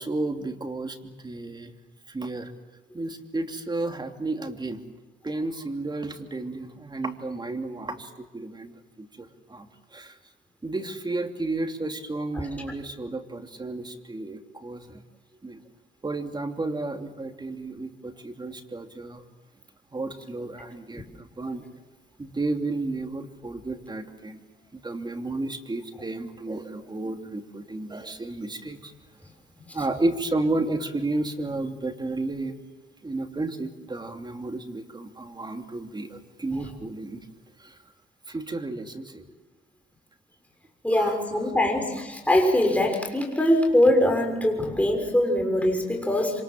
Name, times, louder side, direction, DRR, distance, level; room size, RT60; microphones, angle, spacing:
voice 1, 0.0-1.7 2.1-2.5 2.9-4.8 5.2-8.7 9.0-10.1 10.6-15.0 15.4-15.6 16.0-19.2 19.9-21.6 22.2-24.4 24.7-28.9 29.7-32.5 33.0-37.2 37.6-37.7 38.3-39.3 41.0-41.2, right 2 dB, 20° right, 5 dB, 2.9 m, -32 dB
voice 2, 40.8-46.4, left 1 dB, 5° left, 2 dB, 6.5 m, -22 dB
26.5 x 26.5 x 7.7 m, 1.1 s
cardioid pair, 90°, 20 cm